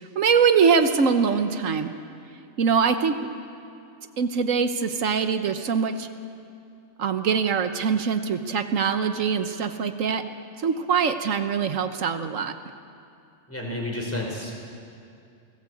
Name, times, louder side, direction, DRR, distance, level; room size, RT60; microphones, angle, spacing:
voice 1, 0.2-1.9 2.6-3.1 4.2-6.1 7.0-10.2 10.6-12.5, right 6 dB, 80° right, 8 dB, 1.4 m, -23 dB
voice 2, 13.5-14.5, left 1 dB, 10° left, -2 dB, 5.2 m, -30 dB
30.0 x 17.5 x 8.4 m, 2.5 s
omnidirectional pair, 1.3 m